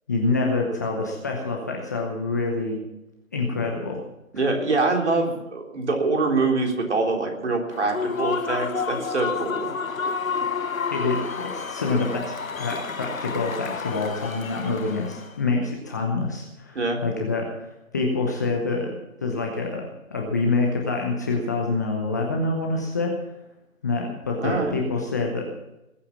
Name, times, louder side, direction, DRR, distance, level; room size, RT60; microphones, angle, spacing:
voice 1, 0.1-2.8 3.3-4.0 10.9-17.5 17.9-23.1 23.8-25.5, left 3 dB, 15° left, 0 dB, 0.8 m, -26 dB
voice 2, 4.3-9.7 16.7-17.0 24.4-24.8, right 3 dB, 55° right, 1 dB, 3.9 m, -24 dB
Human voice / Cheering / Applause, 7.7-15.4, left 5 dB, 75° left, 1.1 m, -30 dB
20.0 x 8.5 x 7.2 m, 0.94 s
figure-of-eight pair, 155°, 41 cm